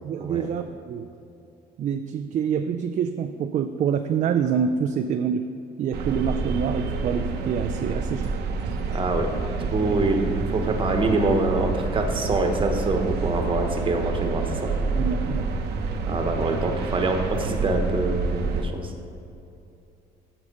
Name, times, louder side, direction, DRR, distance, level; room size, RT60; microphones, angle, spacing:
voice 1, 0.0-1.1 1.8-5.5 5.8-8.4 14.9-15.5, right 7 dB, 45° right, 7 dB, 0.4 m, -26 dB
sound 1, 5.9-18.6, right 3 dB, 75° right, 0.8 m, -28 dB
voice 2, 8.9-14.7 16.1-18.9, right 2 dB, 30° right, 4 dB, 1.2 m, -25 dB
8.1 x 7.1 x 5.3 m, 2.7 s
cardioid pair, 110°, 17 cm